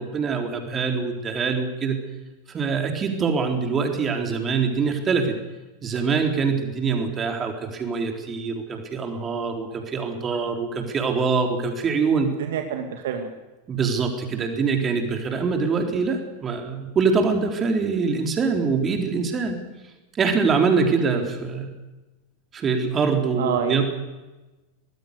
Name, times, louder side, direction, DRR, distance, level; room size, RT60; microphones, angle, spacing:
voice 1, 0.0-2.0 2.5-5.4 5.8-12.3 13.7-19.6 20.1-21.7 22.5-23.8, right 5 dB, 25° right, 4 dB, 4.0 m, -24 dB
voice 2, 12.3-13.3 21.0-21.3 23.3-23.8, right 8 dB, 55° right, 6 dB, 2.2 m, -28 dB
24.0 x 20.0 x 6.7 m, 1.1 s
figure-of-eight pair, 90°, 0 cm